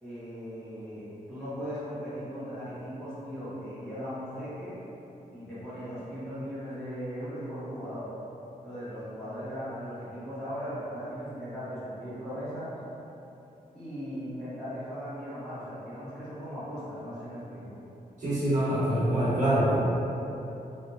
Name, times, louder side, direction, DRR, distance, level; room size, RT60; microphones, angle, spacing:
voice 1, 0.0-4.7 5.3-8.1 8.6-12.7 13.7-17.8, equal, 5° left, -15 dB, 1.2 m, -38 dB
voice 2, 18.2-19.8, right 1 dB, 55° right, -12 dB, 1.2 m, -25 dB
3.3 x 2.7 x 2.7 m, 3.0 s
wide cardioid pair, 160°, 15 cm